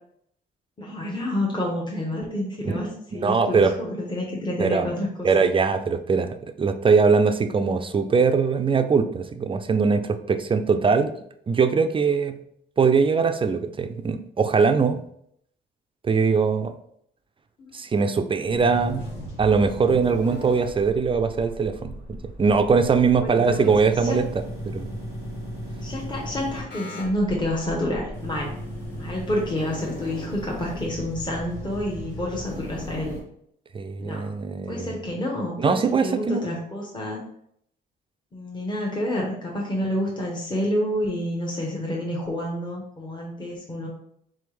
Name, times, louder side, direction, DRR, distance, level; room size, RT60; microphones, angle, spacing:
voice 1, 0.8-2.9 3.1-5.5 17.6-17.8 23.2-23.8 24.0-24.2 25.8-28.5 28.9-33.2 34.0-34.3 34.7-37.2 38.3-43.9, left 1 dB, 25° left, -3 dB, 1.0 m, -29 dB
voice 2, 3.2-3.8 4.6-4.9 5.2-11.1 11.5-12.4 12.8-15.0 16.0-16.7 17.7-19.1 19.4-24.3 24.6-24.9 33.7-34.9 35.6-36.5, right 5 dB, 25° right, 8 dB, 0.3 m, -21 dB
sound 1, 18.4-33.2, equal, 60° left, 1.4 m, -36 dB
3.7 x 3.3 x 3.2 m, 0.70 s
cardioid pair, 90°, 20 cm